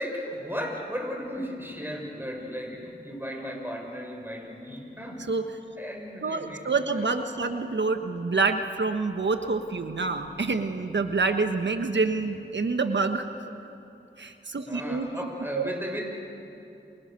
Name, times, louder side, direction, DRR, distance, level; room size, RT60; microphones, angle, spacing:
voice 1, 0.0-5.3 5.8-7.1 14.7-16.0, equal, 10° right, 1 dB, 7.4 m, -35 dB
voice 2, 6.2-13.3 14.2-15.1 15.5-15.7, right 4 dB, 65° right, 7 dB, 1.4 m, -27 dB
29.5 x 27.0 x 6.9 m, 2.8 s
cardioid pair, 45°, 20 cm